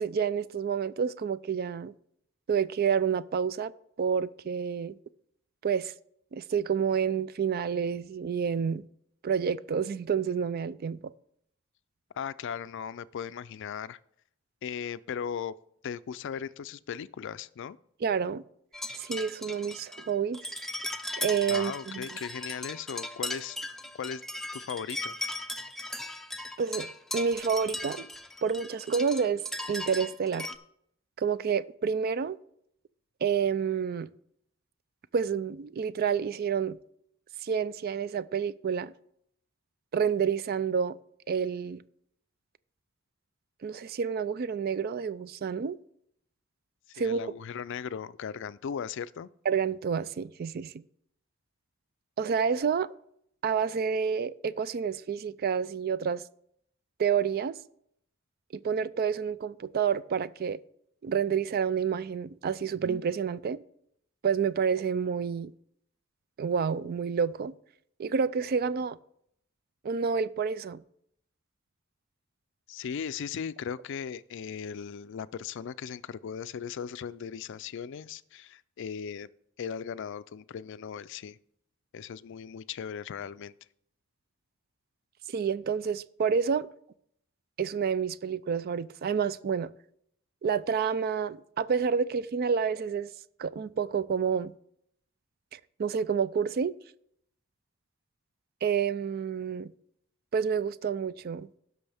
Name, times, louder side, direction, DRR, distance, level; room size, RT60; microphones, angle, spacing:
voice 1, 0.0-1.9 2.5-3.7 4.0-4.9 5.6-5.9 6.3-8.8 9.2-11.0 18.0-18.4 19.0-20.4 21.2-22.0 26.6-26.9 27.1-28.1 28.4-30.5 31.2-32.4 33.2-34.1 35.1-36.8 37.4-38.9 39.9-41.0 41.3-41.8 43.6-45.8 47.0-47.2 49.5-50.7 52.2-52.9 53.4-56.2 57.0-57.6 58.6-60.6 61.0-63.6 64.2-65.5 66.4-67.5 68.0-69.0 69.8-70.8 85.3-86.7 87.6-89.7 90.4-93.1 93.4-94.5 95.5-96.7 98.6-99.7 100.3-101.5, right 6 dB, 50° right, 0.4 m, -29 dB
voice 2, 12.2-14.0 14.6-15.5 15.8-17.8 21.5-23.6 23.9-24.2 24.5-25.2 47.0-49.3 72.7-79.3 79.6-81.4 81.9-83.5, left 7 dB, 60° left, 0.4 m, -37 dB
sound 1, 18.7-30.6, left 1 dB, ahead, 0.6 m, -38 dB
16.0 x 6.2 x 3.4 m
head